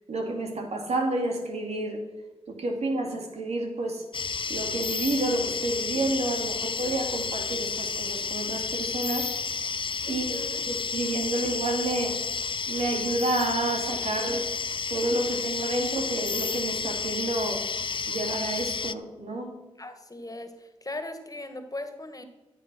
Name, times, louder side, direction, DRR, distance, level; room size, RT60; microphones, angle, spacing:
voice 1, 0.1-2.0 2.5-4.0 4.5-9.3 10.1-12.2 12.7-14.5 14.9-17.7 18.1-19.5, right 2 dB, 75° right, 3 dB, 2.4 m, -29 dB
sound 1, 4.1-18.9, left 5 dB, 50° left, 0.5 m, -31 dB
voice 2, 10.0-10.6 19.8-22.2, left 2 dB, 35° left, 8 dB, 2.0 m, -39 dB
14.5 x 7.7 x 6.3 m, 1.1 s
cardioid pair, 45°, 11 cm